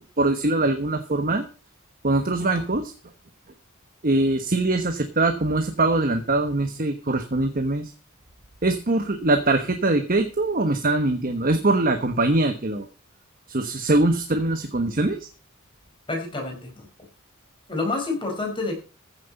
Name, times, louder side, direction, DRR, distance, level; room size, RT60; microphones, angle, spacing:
voice 1, 0.2-1.4 2.0-2.9 4.0-7.9 8.6-12.9 13.5-15.3, right 2 dB, 40° right, 7 dB, 1.1 m, -22 dB
voice 2, 16.1-16.9 17.7-18.8, left 3 dB, 25° left, 2 dB, 4.8 m, -28 dB
14.5 x 7.6 x 5.4 m, 0.34 s
head